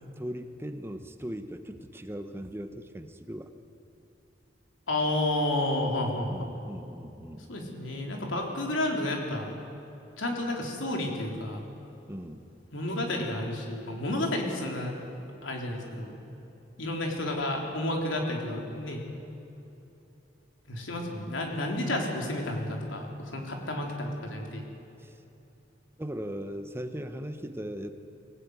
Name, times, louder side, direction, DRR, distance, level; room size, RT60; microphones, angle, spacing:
voice 1, 0.2-3.5 6.3-7.5 12.1-12.5 25.0-25.2 26.0-27.9, equal, 10° right, 7 dB, 1.0 m, -38 dB
voice 2, 4.9-6.5 7.5-9.5 10.2-11.7 12.7-14.9 15.4-16.1 16.8-19.0 20.7-24.7, left 1 dB, 75° left, 1 dB, 3.8 m, -31 dB
24.0 x 16.5 x 9.6 m, 3.0 s
head